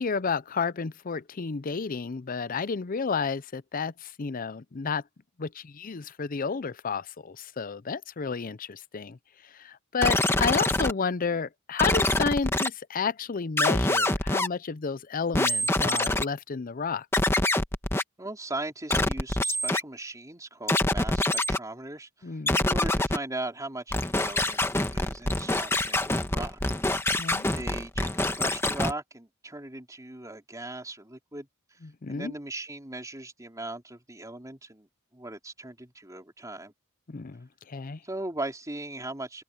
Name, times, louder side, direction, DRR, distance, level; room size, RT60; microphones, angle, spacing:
voice 1, 0.0-5.0 5.4-9.2 9.5-17.1 22.2-22.6 27.2-27.5 31.8-32.3 37.1-38.0, left 5 dB, 40° left, 0.5 m, -31 dB
sound 1, 10.0-10.9 11.8-12.7 13.6-14.5 15.3-16.2 17.1-18.0 18.9-19.8 20.7-21.6 22.5-23.2 23.9-28.9, left 1 dB, 10° left, 1.4 m, -25 dB
voice 2, 18.2-26.6 27.5-31.8 32.1-36.7 38.0-39.4, right 2 dB, 15° right, 3.9 m, -38 dB
head